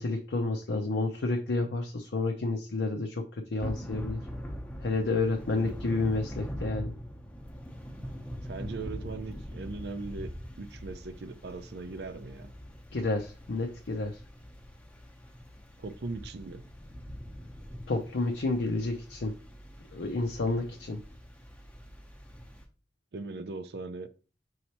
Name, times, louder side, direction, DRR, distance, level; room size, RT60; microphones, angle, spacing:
voice 1, 0.0-4.2 4.8-6.9 12.9-14.2 17.9-19.3 19.9-21.0, left 3 dB, 80° left, 0.6 m, -30 dB
Thunder / Rain, 3.6-22.6, equal, 10° left, 0.7 m, -43 dB
voice 2, 8.4-10.3 10.6-12.5 15.8-16.6 23.1-24.1, right 3 dB, 65° right, 0.4 m, -39 dB
5.4 x 3.2 x 2.9 m
head